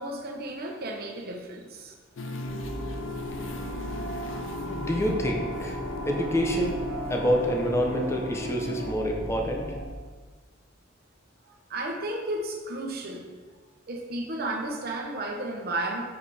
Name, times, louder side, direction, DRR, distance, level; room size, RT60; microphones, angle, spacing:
voice 1, 0.0-1.9 11.5-13.3 13.9-16.0, right 2 dB, 50° right, 1 dB, 1.1 m, -33 dB
sound 1, 2.2-8.9, left 2 dB, 70° left, 0.6 m, -36 dB
sound 2, 2.4-9.9, equal, 20° right, 1.3 m, -37 dB
voice 2, 4.8-5.8 6.1-6.8 7.1-9.6, equal, 15° left, 1 dB, 0.8 m, -27 dB
7.2 x 4.9 x 4.9 m, 1.4 s
head